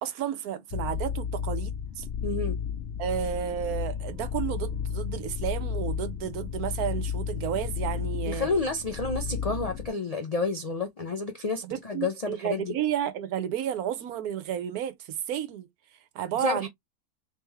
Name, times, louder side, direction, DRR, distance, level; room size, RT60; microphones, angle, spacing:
voice 1, 0.0-2.1 3.0-8.5 11.6-15.7 16.1-16.7, right 10 dB, 80° right, 1.2 m, -32 dB
sound 1, 0.7-9.9, left 7 dB, 55° left, 0.9 m, -32 dB
voice 2, 2.2-2.6 8.3-12.7 16.4-16.7, left 3 dB, 75° left, 0.3 m, -30 dB
3.4 x 3.3 x 3.2 m
omnidirectional pair, 1.6 m